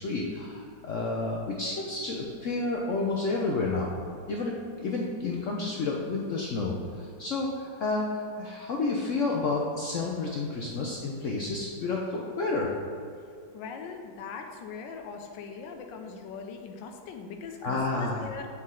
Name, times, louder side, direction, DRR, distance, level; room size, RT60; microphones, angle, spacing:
voice 1, 0.0-3.9 4.3-12.7 17.6-18.2, left 3 dB, 70° left, -1 dB, 0.7 m, -30 dB
voice 2, 13.5-18.5, left 5 dB, 90° left, 3 dB, 1.3 m, -41 dB
7.7 x 4.2 x 3.7 m, 2.4 s
omnidirectional pair, 2.0 m